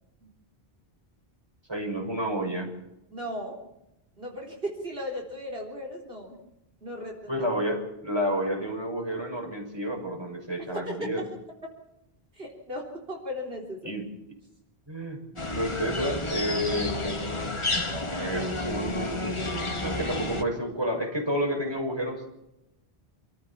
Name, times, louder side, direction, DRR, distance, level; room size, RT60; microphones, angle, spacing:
voice 1, 1.7-2.7 7.3-11.2 13.8-14.0 14.9-15.2 15.5-17.2 18.1-19.3 19.8-22.3, equal, 25° right, 1 dB, 6.1 m, -30 dB
voice 2, 3.1-3.6 4.2-6.3 6.8-7.5 10.6-11.1 12.3-13.9, equal, 70° right, 0 dB, 4.1 m, -36 dB
sound 1, 15.4-20.4, left 2 dB, 30° left, 1.6 m, -31 dB
28.0 x 14.5 x 7.2 m, 0.90 s
omnidirectional pair, 1.0 m